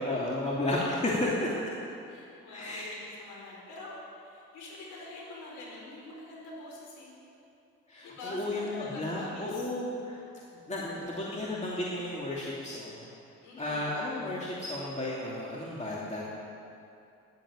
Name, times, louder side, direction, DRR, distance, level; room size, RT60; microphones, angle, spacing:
voice 1, 0.0-1.6 2.5-3.0 7.9-10.2 10.7-13.1 13.6-16.2, left 1 dB, 25° left, -5 dB, 2.8 m, -33 dB
voice 2, 2.1-7.1 8.0-9.7 10.8-11.5 13.4-13.9, left 2 dB, 90° left, -2 dB, 4.6 m, -45 dB
13.5 x 11.5 x 8.7 m, 2.6 s
cardioid pair, 90°, 30 cm